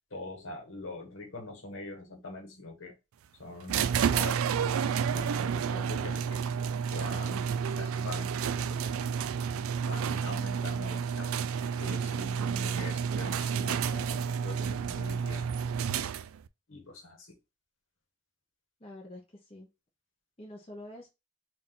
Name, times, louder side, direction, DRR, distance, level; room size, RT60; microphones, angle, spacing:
voice 1, 0.1-3.0 3.4-6.4 6.9-8.9 9.9-11.4 11.8-15.5 16.7-17.4, left 2 dB, 65° left, 1.3 m, -43 dB
sound 1, 3.7-16.5, right 7 dB, 85° right, 0.3 m, -30 dB
voice 2, 12.4-12.8 18.8-19.7 20.4-21.1, left 1 dB, 25° left, 0.9 m, -47 dB
4.2 x 2.6 x 3.6 m
head